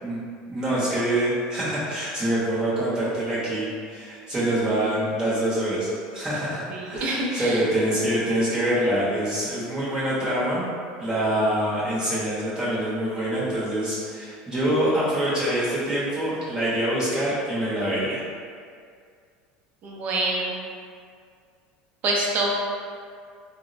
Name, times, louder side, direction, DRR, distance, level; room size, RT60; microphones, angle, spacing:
voice 1, 0.5-10.7 11.0-18.2, right 1 dB, 20° right, -9 dB, 0.9 m, -25 dB
voice 2, 6.7-7.6 19.8-20.5 22.0-22.5, right 2 dB, 40° right, -2 dB, 0.5 m, -26 dB
3.4 x 2.0 x 2.5 m, 2.2 s
supercardioid pair, 130°, 4 cm